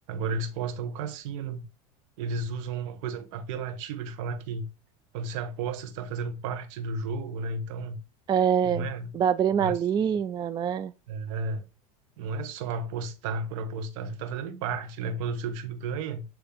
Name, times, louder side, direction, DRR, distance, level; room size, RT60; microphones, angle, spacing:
voice 1, 0.1-1.6 2.2-4.7 5.1-8.0 8.6-9.2 9.6-9.7 11.1-11.6 12.2-16.2, right 4 dB, 65° right, 1.5 m, -33 dB
voice 2, 8.3-8.9 9.1-10.9, right 8 dB, 25° right, 0.4 m, -25 dB
9.0 x 3.3 x 3.5 m
hypercardioid pair, 95°, 18 cm